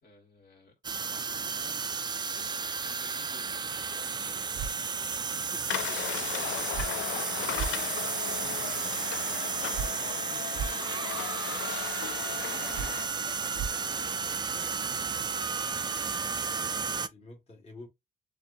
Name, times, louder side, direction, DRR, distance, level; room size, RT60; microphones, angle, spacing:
voice 1, 0.0-2.5 2.9-4.7 6.2-9.0 9.5-11.7 12.4-13.3 13.7-14.5, left 3 dB, 50° left, 2.2 m, -54 dB
sound 1, 0.8-17.1, right 5 dB, 20° right, 0.3 m, -33 dB
sound 2, 4.6-4.7 6.7-6.9 7.6-7.7 9.7-9.9 10.6-10.7 12.7-12.9 13.6-13.7, right 7 dB, 65° right, 0.6 m, -32 dB
voice 2, 5.5-6.2 6.6-6.7 16.9-17.9, left 3 dB, 30° left, 1.6 m, -49 dB
sound 3, 5.7-13.1, left 12 dB, 75° left, 0.4 m, -37 dB
7.0 x 2.5 x 2.5 m
cardioid pair, 90°, 20 cm